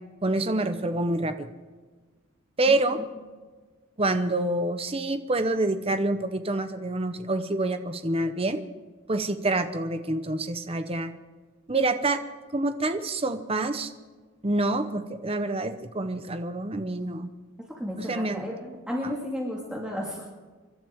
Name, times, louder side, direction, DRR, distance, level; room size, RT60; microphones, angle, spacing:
voice 1, 0.2-1.5 2.6-3.0 4.0-8.6 9.1-11.1 11.7-12.2 12.5-13.9 14.4-17.3 18.0-18.4 19.0-19.1, right 2 dB, 25° right, 9 dB, 0.9 m, -27 dB
voice 2, 17.8-20.3, equal, 5° right, -3 dB, 1.9 m, -33 dB
28.0 x 12.0 x 3.6 m, 1.4 s
head